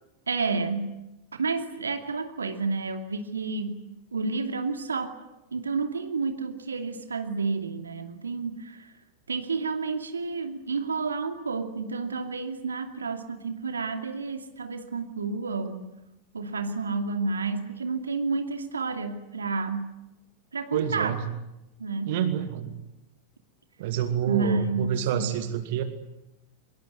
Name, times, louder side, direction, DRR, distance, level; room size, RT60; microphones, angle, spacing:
voice 1, 0.3-0.9 1.4-3.8 4.1-5.1 5.5-8.9 9.3-15.9 16.3-19.9 20.5-21.2 21.8-22.2 24.3-25.3, right 4 dB, 75° right, 6 dB, 2.6 m, -30 dB
voice 2, 20.7-21.2 22.0-22.7 23.8-25.8, right 9 dB, 50° right, 9 dB, 2.4 m, -28 dB
24.5 x 23.0 x 9.6 m, 0.92 s
figure-of-eight pair, 90°, 0 cm